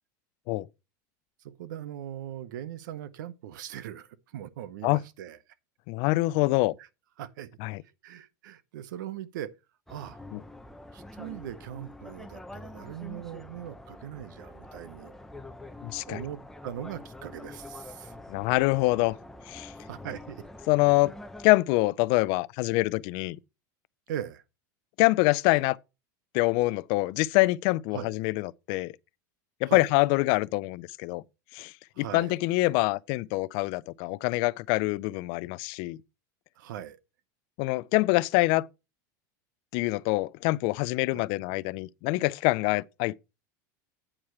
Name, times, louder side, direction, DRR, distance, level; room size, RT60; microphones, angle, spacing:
voice 1, 1.6-5.4 6.8-6.9 7.2-7.5 8.0-9.5 9.9-10.2 10.9-15.1 16.1-18.2 19.9-20.4 24.1-24.4 27.9-28.1 29.7-29.9 32.0-32.3 36.6-37.0 41.1-41.3, right 11 dB, 80° right, 0.9 m, -40 dB
voice 2, 5.9-6.8 7.6-7.8 10.3-10.4 15.8-16.2 18.3-19.2 19.5-19.7 20.7-21.1 21.4-23.4 25.0-25.8 26.3-28.9 29.6-31.2 31.5-36.0 37.6-38.7 39.7-43.2, left 21 dB, 55° left, 0.5 m, -25 dB
sound 1, 9.9-21.5, left 2 dB, 5° left, 0.7 m, -46 dB
8.8 x 4.8 x 5.7 m
supercardioid pair, 130°, 10 cm